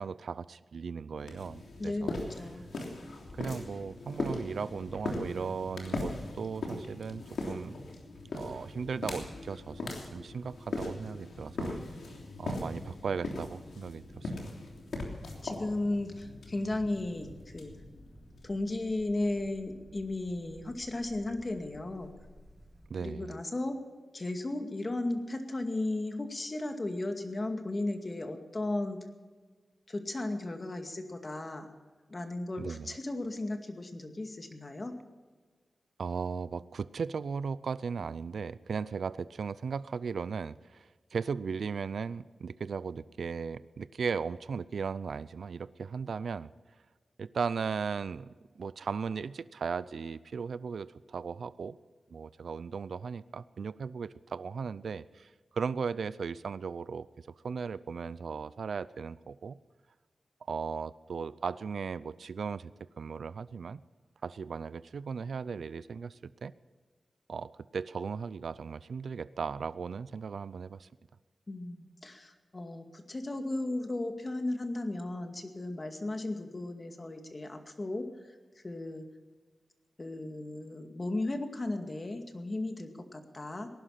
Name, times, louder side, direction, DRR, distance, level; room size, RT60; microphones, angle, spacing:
voice 1, 0.0-2.1 3.4-7.7 8.3-11.8 12.4-14.5 22.9-23.3 32.6-32.9 36.0-46.5 47.2-48.3 48.6-51.8 52.1-57.1 57.4-59.6 60.4-62.7 63.0-63.8 64.2-66.5 67.3-70.9, right 5 dB, 80° right, 16 dB, 0.5 m, -37 dB
sound 1, 1.2-18.7, left 2 dB, 90° left, 3.3 m, -40 dB
voice 2, 1.8-2.6 15.2-17.7 18.4-22.1 23.0-23.8 24.1-29.0 29.9-31.7 32.1-34.9 71.5-78.4 78.6-79.1 80.0-83.7, left 2 dB, 35° left, 5 dB, 2.2 m, -35 dB
sound 2, 16.5-22.9, equal, 5° right, 2.3 m, -56 dB
19.0 x 11.5 x 5.8 m, 1.4 s
wide cardioid pair, 75°, 0 cm